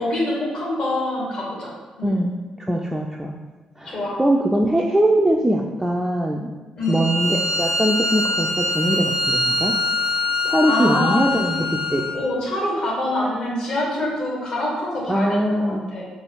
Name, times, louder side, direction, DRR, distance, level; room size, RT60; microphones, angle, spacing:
voice 1, 0.0-1.7 2.0-2.2 3.9-4.2 6.8-7.0 10.6-11.5 12.1-15.5 15.9-16.0, left 1 dB, 50° left, -4 dB, 1.4 m, -25 dB
voice 2, 2.0-2.3 2.7-3.3 3.8-6.5 6.9-9.7 10.4-11.6 11.9-12.0 15.1-15.9, right 1 dB, 5° right, -1 dB, 0.3 m, -21 dB
Bowed string instrument, 6.8-12.2, left 2 dB, 85° left, 0.8 m, -23 dB
4.5 x 2.4 x 3.1 m, 1.3 s
figure-of-eight pair, 40°, 2 cm